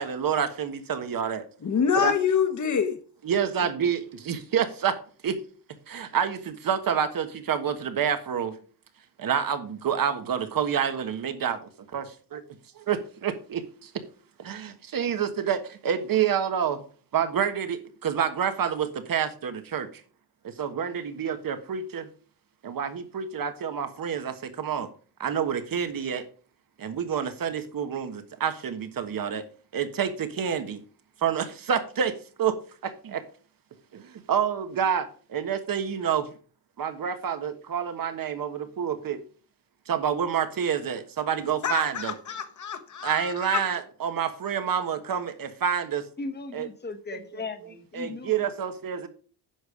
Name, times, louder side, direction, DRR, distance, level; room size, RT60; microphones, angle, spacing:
voice 1, 0.0-1.4 1.9-2.1 3.2-4.9 5.2-5.4 5.9-8.6 9.2-11.6 11.9-12.4 12.8-13.9 14.4-16.8 17.1-20.0 20.4-22.1 22.6-24.9 25.2-26.2 26.8-29.4 29.7-30.8 31.2-32.6 33.1-33.2 33.9-36.3 36.8-39.2 39.9-42.1 43.0-46.1 46.5-46.7 47.1-49.1, right 8 dB, 55° right, 1.4 m, -28 dB
voice 2, 1.6-3.0 41.6-43.6, left 7 dB, 45° left, 1.2 m, -26 dB
voice 3, 46.2-48.3, left 3 dB, 25° left, 1.1 m, -37 dB
10.0 x 6.8 x 5.0 m
wide cardioid pair, 180°, 40 cm